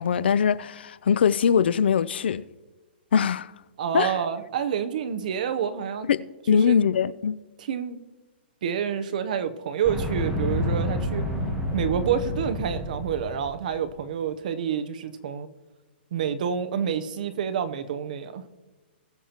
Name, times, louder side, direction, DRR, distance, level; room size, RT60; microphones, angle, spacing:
voice 1, 0.0-2.4 3.1-3.5 3.9-4.2 6.1-7.3, left 7 dB, 70° left, 0.4 m, -22 dB
voice 2, 3.8-6.1 6.5-6.8 7.6-8.0 8.6-11.3 11.7-15.5 16.1-18.4, right 8 dB, 45° right, 0.7 m, -28 dB
sound 1, 9.8-13.8, left 1 dB, 5° right, 1.1 m, -29 dB
20.5 x 7.3 x 2.9 m
hypercardioid pair, 170°, 6 cm